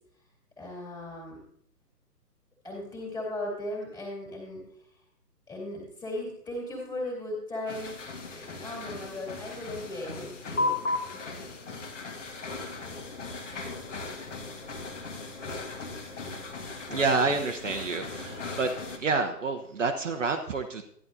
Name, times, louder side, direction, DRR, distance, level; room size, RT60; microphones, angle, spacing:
voice 1, 0.6-1.4 2.6-4.7 5.5-8.0 8.3-10.8 11.1-11.4, left 1 dB, 10° left, -3 dB, 2.5 m, -37 dB
sound 1, 7.7-19.0, left 3 dB, 45° left, 1.6 m, -36 dB
voice 2, 16.9-18.7 19.0-20.8, right 4 dB, 50° right, 5 dB, 0.9 m, -28 dB
14.0 x 10.5 x 2.6 m, 0.69 s
figure-of-eight pair, 140°, 49 cm